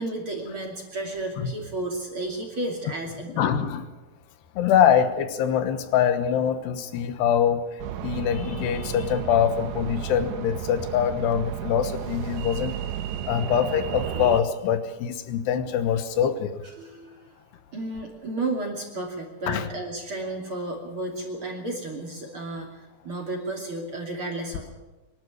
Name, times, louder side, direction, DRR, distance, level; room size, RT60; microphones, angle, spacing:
voice 1, 0.0-3.5 16.8-17.4 17.7-24.7, right 2 dB, 35° right, 1 dB, 3.0 m, -33 dB
voice 2, 3.4-3.9 4.6-7.6 8.0-12.8 13.3-16.6 19.5-19.7, left 9 dB, 85° left, 10 dB, 3.4 m, -24 dB
sound 1, 7.8-14.4, right 10 dB, 90° right, 3.3 m, -33 dB
24.0 x 12.5 x 9.8 m, 1.1 s
omnidirectional pair, 4.8 m